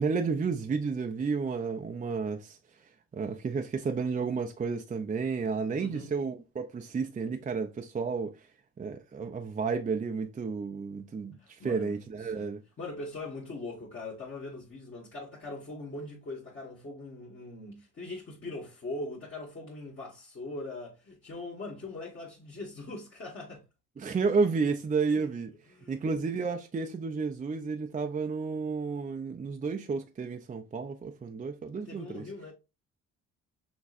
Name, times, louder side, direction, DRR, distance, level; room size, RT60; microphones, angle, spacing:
voice 1, 0.0-2.6 3.1-8.5 8.8-12.6 24.0-25.5 25.9-32.2, right 5 dB, 25° right, 0.5 m, -31 dB
voice 2, 5.8-6.1 11.4-12.0 12.2-12.5 12.8-23.6 25.1-25.4 25.7-26.0 31.8-32.5, left 2 dB, 40° left, 1.7 m, -41 dB
6.0 x 3.1 x 2.5 m
cardioid pair, 90°, 30 cm